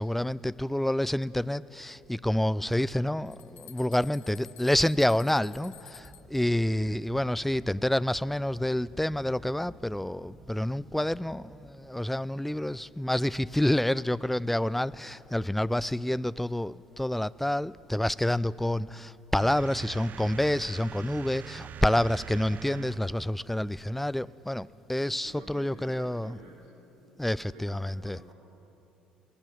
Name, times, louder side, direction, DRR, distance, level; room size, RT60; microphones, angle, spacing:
voice 1, 0.0-26.4 27.2-28.2, left 1 dB, 5° left, 17 dB, 0.5 m, -28 dB
sound 1, 3.3-6.4, left 12 dB, 60° left, 1.2 m, -52 dB
sound 2, 5.9-13.0, right 2 dB, 15° right, 1.9 m, -53 dB
sound 3, 19.4-23.3, right 9 dB, 45° right, 0.5 m, -43 dB
voice 2, 25.2-28.3, right 2 dB, 75° right, -1 dB, 3.9 m, -52 dB
22.5 x 20.0 x 9.4 m, 2.9 s
figure-of-eight pair, 50°, 4 cm